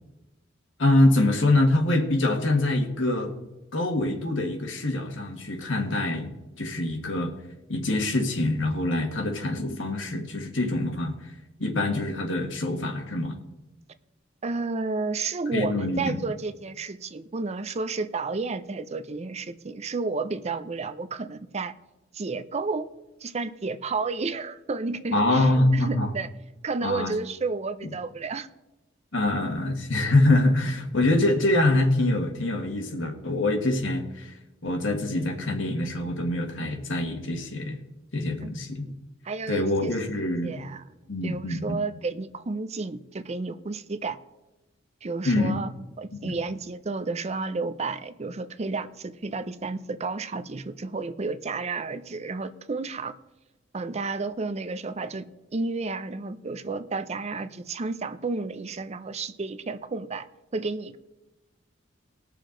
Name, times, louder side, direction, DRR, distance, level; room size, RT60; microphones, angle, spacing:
voice 1, 0.8-3.3 3.7-6.3 6.6-7.3 7.7-11.1 11.6-13.4 15.5-16.2 25.1-26.1 26.8-27.1 29.1-34.3 34.6-37.8 38.1-38.9 39.5-40.6 41.1-41.8 45.2-45.6 46.2-46.3, left 2 dB, 75° left, 4 dB, 1.6 m, -24 dB
voice 2, 14.4-21.7 22.1-22.9 23.2-26.3 26.6-28.5 38.4-38.9 39.2-40.8 41.2-44.2 45.0-45.7 46.0-53.1 53.7-60.3 60.5-61.0, right 3 dB, 35° right, 12 dB, 0.5 m, -32 dB
20.0 x 6.7 x 3.8 m, 1.0 s
head